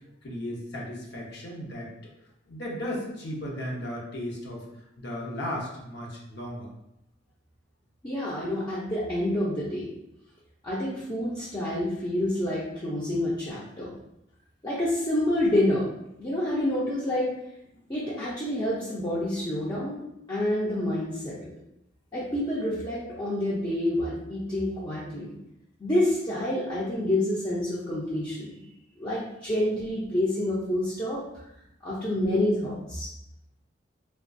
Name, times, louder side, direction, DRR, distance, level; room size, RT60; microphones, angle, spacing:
voice 1, 0.2-1.9 2.5-6.7, left 1 dB, 60° left, -3 dB, 0.8 m, -35 dB
voice 2, 8.0-9.9 10.6-13.9 14.6-15.9 16.2-17.3 17.9-20.0 20.3-21.5 22.1-25.3 25.8-28.7 29.0-31.2 31.8-33.1, left 1 dB, 20° left, -9 dB, 0.5 m, -28 dB
3.3 x 2.3 x 2.6 m, 0.82 s
head